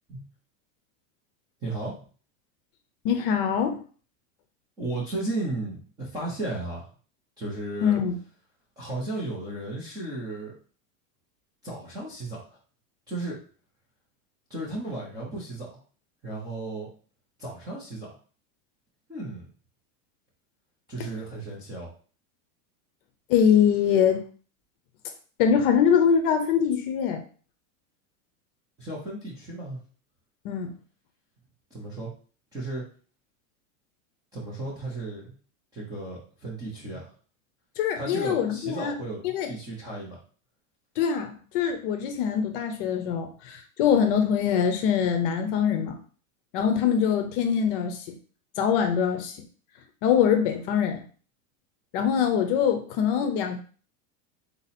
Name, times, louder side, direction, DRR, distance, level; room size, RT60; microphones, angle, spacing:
voice 1, 1.6-2.0 4.8-6.9 7.4-8.0 8.8-10.5 11.6-12.5 13.1-13.4 14.5-15.8 16.2-16.9 17.4-18.2 19.1-19.5 20.9-21.9 28.8-29.8 31.7-32.1 32.5-32.8 34.3-35.3 35.7-37.1 38.0-39.2 39.5-40.2, right 2 dB, 10° right, -7 dB, 0.4 m, -34 dB
voice 2, 3.0-3.8 7.8-8.1 23.3-24.2 25.4-27.2 30.4-30.7 37.8-38.9 39.3-39.5 41.0-46.0 46.5-48.1 48.6-49.3 50.0-51.0 51.9-53.6, left 7 dB, 40° left, 5 dB, 0.6 m, -23 dB
4.0 x 2.8 x 4.1 m, 0.40 s
supercardioid pair, 175°, 43 cm